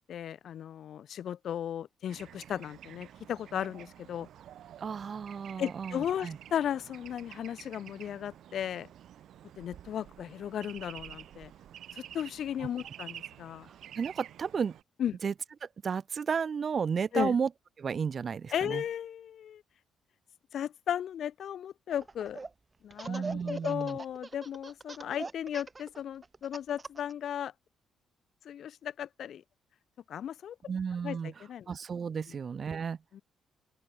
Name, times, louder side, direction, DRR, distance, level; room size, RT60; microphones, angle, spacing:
voice 1, 0.0-4.3 5.6-8.9 9.6-11.5 11.9-13.7 15.0-15.2 17.1-17.4 18.5-19.6 20.5-22.4 22.8-27.5 28.4-29.4 30.1-30.6 31.0-31.7 32.3-32.4 33.1-33.2, left 9 dB, 65° left, 2.3 m, -35 dB
Bird / Traffic noise roadway noise, 2.1-14.8, right 11 dB, 70° right, 4.0 m, -49 dB
voice 2, 4.8-6.4 13.7-14.7 15.2-15.3 15.6-17.5 17.8-18.8 23.1-24.0 30.7-31.3 31.7-33.0, right 6 dB, 45° right, 0.6 m, -33 dB
Laughter, 21.9-22.5 22.9-27.1, right 3 dB, 25° right, 4.8 m, -41 dB
open air
cardioid pair, 90°, 0 cm